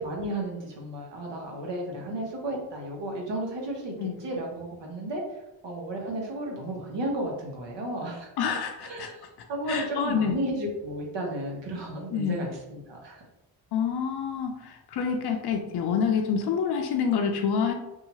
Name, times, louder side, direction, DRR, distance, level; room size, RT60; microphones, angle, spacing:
voice 1, 0.0-5.2 5.6-8.3 8.8-9.2 9.5-13.2, right 1 dB, 70° right, -1 dB, 1.0 m, -33 dB
voice 2, 8.4-9.1 9.7-10.4 12.1-12.4 13.7-17.7, left 6 dB, 60° left, 4 dB, 0.5 m, -27 dB
2.7 x 2.3 x 2.8 m, 0.98 s
supercardioid pair, 55°, 45 cm